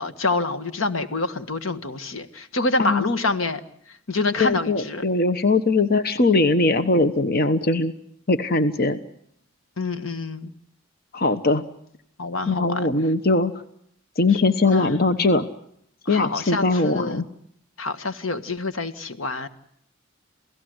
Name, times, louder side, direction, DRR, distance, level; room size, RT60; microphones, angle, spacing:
voice 1, 0.0-3.6 4.1-5.0 9.8-10.5 12.2-12.9 14.7-15.3 16.0-17.2 17.8-19.5, left 3 dB, 80° left, 11 dB, 1.6 m, -27 dB
voice 2, 2.8-3.1 4.4-7.9 8.3-9.0 11.1-11.6 12.5-13.5 14.2-15.5 16.1-17.3, left 3 dB, 45° left, 10 dB, 1.1 m, -20 dB
28.5 x 17.0 x 8.0 m, 0.71 s
head